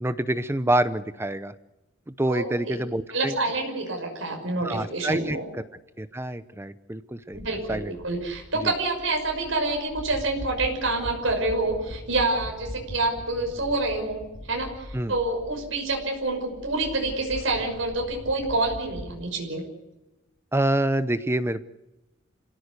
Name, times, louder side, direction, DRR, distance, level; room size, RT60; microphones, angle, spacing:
voice 1, 0.0-1.5 2.2-3.3 4.6-5.6 6.0-7.9 8.5-8.7 14.9-15.1 20.5-21.6, right 1 dB, 10° right, 13 dB, 0.8 m, -27 dB
voice 2, 2.3-2.8 3.1-5.4 7.3-19.6, right 2 dB, 75° right, 2 dB, 6.0 m, -27 dB
sound 1, 7.3-19.2, equal, 55° left, 2.8 m, -41 dB
27.0 x 17.0 x 8.4 m, 0.99 s
head